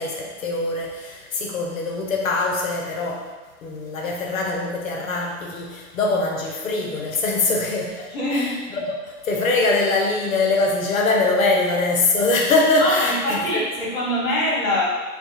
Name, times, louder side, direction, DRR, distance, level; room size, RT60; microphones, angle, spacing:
voice 1, 0.0-3.3 3.6-13.6, left 3 dB, 65° left, 0 dB, 0.5 m, -23 dB
voice 2, 8.1-8.6 12.8-14.8, left 1 dB, 35° left, -7 dB, 1.0 m, -23 dB
2.3 x 2.1 x 2.8 m, 1.3 s
figure-of-eight pair, 105°, 44 cm